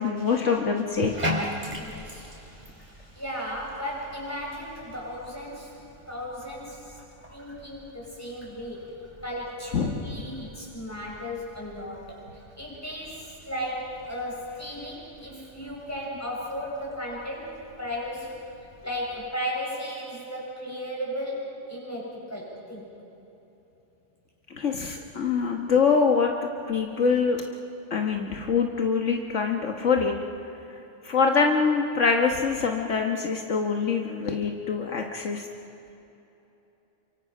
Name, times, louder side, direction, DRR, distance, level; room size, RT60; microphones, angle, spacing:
voice 1, 0.0-1.1 9.7-10.2 24.5-26.3 26.7-27.4 27.9-30.1 31.0-35.5, left 5 dB, 75° left, 2 dB, 1.7 m, -24 dB
Bathtub (filling or washing), 0.9-19.3, equal, 35° right, 3.9 m, -41 dB
voice 2, 1.0-5.7 6.1-7.0 7.3-8.9 9.2-12.2 12.5-18.4 18.8-22.9, equal, 10° left, -4 dB, 7.2 m, -35 dB
28.5 x 24.5 x 6.0 m, 3.0 s
omnidirectional pair, 1.3 m